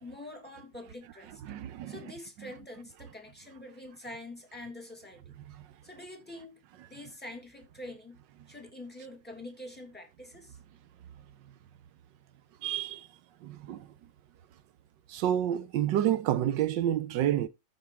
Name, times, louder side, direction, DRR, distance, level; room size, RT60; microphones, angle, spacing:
voice 1, 0.0-1.4 1.9-5.3 5.8-6.6 6.9-8.2 8.5-10.6, left 1 dB, 5° left, 2.2 m, -45 dB
voice 2, 1.4-2.0 12.6-13.1 13.4-13.9 15.1-17.5, right 11 dB, 70° right, 1.3 m, -29 dB
13.5 x 4.6 x 4.6 m
omnidirectional pair, 2.2 m